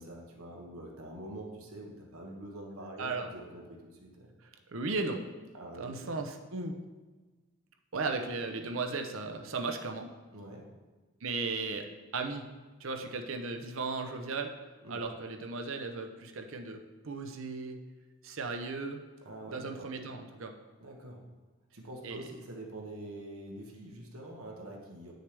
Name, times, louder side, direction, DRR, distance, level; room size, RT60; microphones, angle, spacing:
voice 1, 0.0-4.3 5.5-6.0 10.3-10.7 14.8-15.0 19.2-19.9 20.8-21.2 21.7-25.1, right 1 dB, 90° right, 0 dB, 1.3 m, -45 dB
voice 2, 3.0-3.3 4.7-5.2 5.8-6.8 7.9-10.1 11.2-11.9 12.1-12.5 12.8-14.5 14.9-17.8 18.2-19.0 19.5-20.5 22.0-22.2, right 3 dB, 70° right, 5 dB, 0.8 m, -36 dB
9.5 x 6.5 x 3.4 m, 1.3 s
head